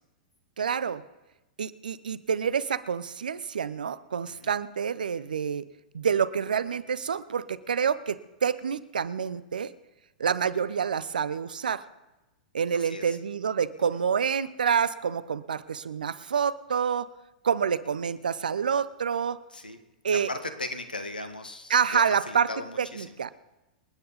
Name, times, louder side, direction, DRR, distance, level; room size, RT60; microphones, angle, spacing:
voice 1, 0.6-1.0 1.6-5.6 5.9-9.7 10.2-11.8 12.5-17.1 17.4-19.4 20.0-20.3 21.7-22.5 22.8-23.3, right 7 dB, 75° right, 17 dB, 0.7 m, -27 dB
voice 2, 12.7-13.2 19.5-19.8 20.1-23.2, left 2 dB, 90° left, 8 dB, 1.5 m, -38 dB
27.0 x 9.3 x 4.1 m, 1.0 s
figure-of-eight pair, 105°, 5 cm